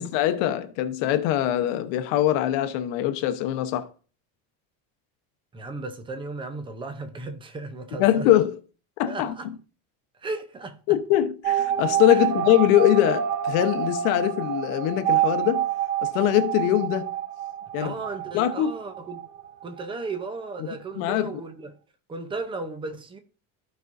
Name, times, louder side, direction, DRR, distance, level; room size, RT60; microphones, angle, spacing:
voice 1, 0.0-3.9 8.0-8.6 9.0-9.3 10.9-15.6 16.0-17.1 17.7-17.9 18.3-18.7 21.0-21.4, left 13 dB, 75° left, 1.0 m, -22 dB
voice 2, 5.5-8.3 9.1-9.5 10.2-10.8 12.1-12.3 17.8-19.2 19.6-21.8 22.1-23.2, right 3 dB, 15° right, 0.6 m, -35 dB
sound 1, 11.4-19.9 20.2-20.3 20.5-20.6, right 10 dB, 40° right, 0.9 m, -27 dB
15.0 x 5.4 x 2.6 m
cardioid pair, 175°, 38 cm